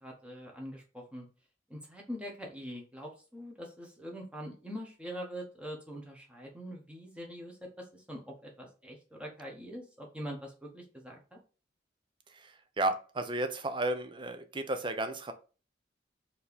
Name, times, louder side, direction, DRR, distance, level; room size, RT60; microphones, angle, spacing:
voice 1, 0.0-1.3 1.7-11.4, equal, 5° right, 1.1 m, -43 dB
voice 2, 12.3-15.3, right 2 dB, 25° right, 0.5 m, -33 dB
4.4 x 2.9 x 3.4 m
head